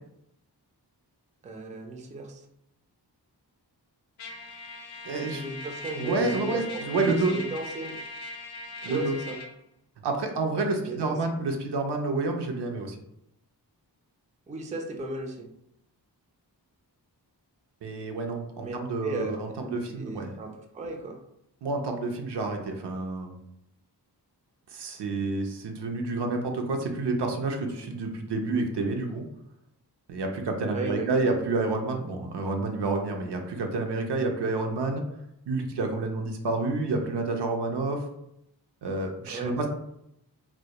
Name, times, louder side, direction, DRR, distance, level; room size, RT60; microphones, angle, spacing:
voice 1, 1.4-2.5 5.1-8.0 8.8-9.4 10.9-11.2 14.5-15.5 18.6-19.4 19.9-21.2 30.7-31.4 39.3-39.7, right 2 dB, 20° right, 3 dB, 0.3 m, -35 dB
Trumpet, 4.2-9.5, left 2 dB, 65° left, 0.5 m, -40 dB
voice 2, 5.0-5.5 6.0-7.4 8.8-9.2 10.0-13.0 17.8-20.3 21.6-23.4 24.7-29.2 30.1-35.0 35.5-38.0 38.8-39.7, right 3 dB, 75° right, 3 dB, 0.5 m, -29 dB
2.1 x 2.1 x 2.8 m, 0.80 s
wide cardioid pair, 65°, 41 cm